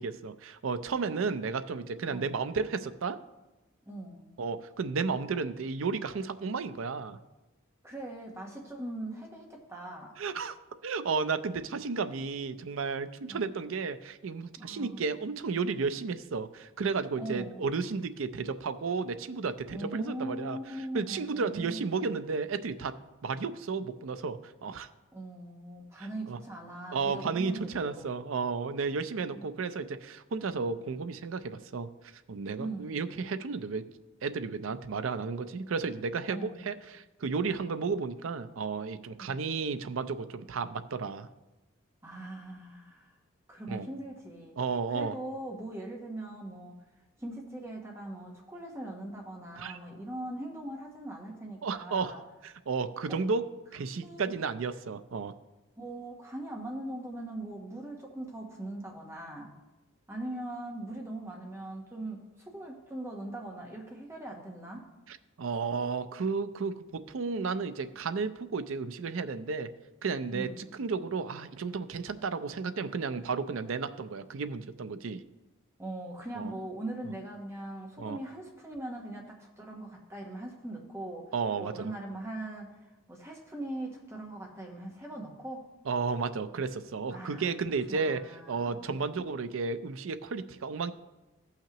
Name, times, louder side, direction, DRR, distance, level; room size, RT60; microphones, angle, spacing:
voice 1, 0.0-3.2 4.4-7.2 10.2-10.6 10.8-20.6 20.9-23.0 23.2-24.9 26.0-26.4 26.9-31.9 32.3-33.8 34.2-41.3 43.7-43.9 44.6-45.2 49.6-49.8 51.6-52.1 52.4-53.5 53.7-55.3 65.1-69.7 70.0-75.2 76.3-76.5 78.0-78.2 81.3-81.9 85.9-90.9, right 4 dB, 80° right, 11 dB, 0.5 m, -33 dB
voice 2, 3.9-4.3 7.8-10.1 13.3-13.5 14.6-15.0 17.2-17.7 19.7-21.9 25.1-28.1 29.3-29.5 32.6-33.0 36.3-36.7 39.2-39.3 42.0-43.1 43.5-44.6 44.9-46.8 47.2-52.2 53.1-53.2 53.9-54.3 55.8-59.5 60.1-64.8 70.3-70.8 75.8-81.3 81.6-82.8 83.1-85.6 87.1-87.5 87.9-89.1, right 1 dB, 15° right, 0 dB, 1.1 m, -41 dB
15.5 x 5.8 x 3.0 m, 1.1 s
head